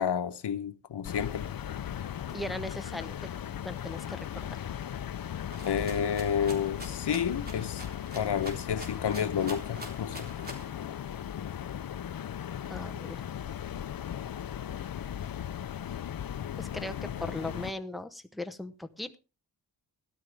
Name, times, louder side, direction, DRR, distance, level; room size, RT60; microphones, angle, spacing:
voice 1, 0.0-1.5 5.6-7.8 8.1-10.3, left 8 dB, 90° left, 0.9 m, -30 dB
sound 1, 1.0-17.7, left 9 dB, 60° left, 0.6 m, -37 dB
voice 2, 2.3-3.3 3.6-4.4 12.7-13.3 16.6-19.2, left 1 dB, ahead, 0.8 m, -38 dB
Rattle (instrument), 5.5-10.7, equal, 25° right, 3.7 m, -45 dB
13.5 x 12.0 x 3.4 m
wide cardioid pair, 95°, 40 cm